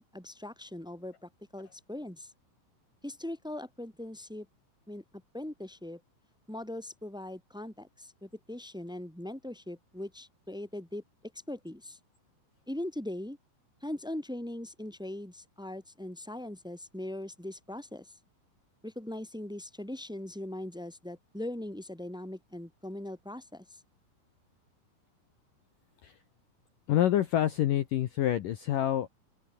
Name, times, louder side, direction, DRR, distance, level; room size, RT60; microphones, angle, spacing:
voice 1, 0.0-2.3 3.0-4.5 4.9-5.0 5.3-6.0 6.5-11.0 11.5-12.0 12.7-13.4 13.8-18.1 18.8-23.8, left 1 dB, ahead, 2.0 m, -40 dB
voice 2, 26.9-29.1, left 12 dB, 75° left, 2.0 m, -27 dB
open air
omnidirectional pair, 5.4 m